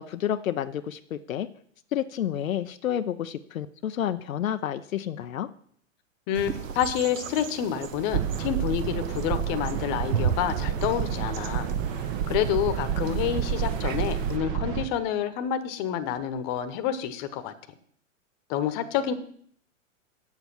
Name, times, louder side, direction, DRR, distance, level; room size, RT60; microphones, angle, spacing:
voice 1, 0.0-1.5 1.9-5.5, left 10 dB, 85° left, 9 dB, 0.6 m, -30 dB
voice 2, 6.3-11.7 12.3-17.5 18.5-19.1, left 9 dB, 40° left, 11 dB, 1.0 m, -28 dB
sound 1, 6.3-14.4, right 7 dB, 80° right, 0.9 m, -36 dB
sound 2, 8.1-14.9, right 9 dB, 40° right, 1.1 m, -29 dB
7.8 x 7.3 x 6.0 m, 0.62 s
hypercardioid pair, 120°, 39 cm